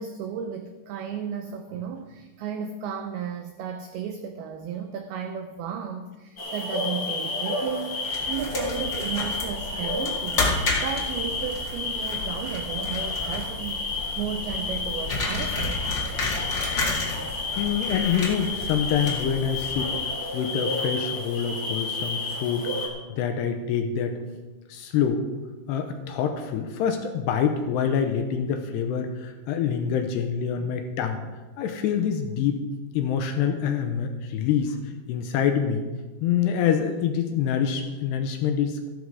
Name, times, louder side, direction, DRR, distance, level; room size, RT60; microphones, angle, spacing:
voice 1, 0.0-15.9 30.6-30.7, right 7 dB, 85° right, 6 dB, 2.2 m, -34 dB
sound 1, 6.4-22.9, left 3 dB, 30° left, 2.0 m, -31 dB
sound 2, 8.0-20.1, left 3 dB, 55° left, 1.2 m, -32 dB
voice 2, 17.6-20.0 20.3-24.2 24.7-25.3 25.7-31.2 31.6-32.6 32.9-34.8 35.1-35.8 36.2-38.9, left 7 dB, 80° left, 6 dB, 2.6 m, -26 dB
13.5 x 12.0 x 4.8 m, 1.2 s
omnidirectional pair, 5.4 m